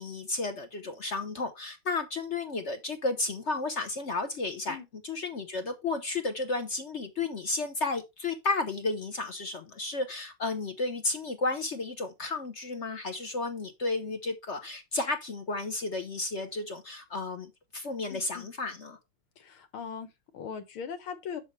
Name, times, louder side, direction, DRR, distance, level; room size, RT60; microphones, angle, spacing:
voice 1, 0.0-4.8 5.0-19.0, left 3 dB, 50° left, 0.9 m, -33 dB
voice 2, 18.1-18.5 19.4-21.4, left 7 dB, 75° left, 2.1 m, -40 dB
7.8 x 6.8 x 3.2 m
omnidirectional pair, 2.3 m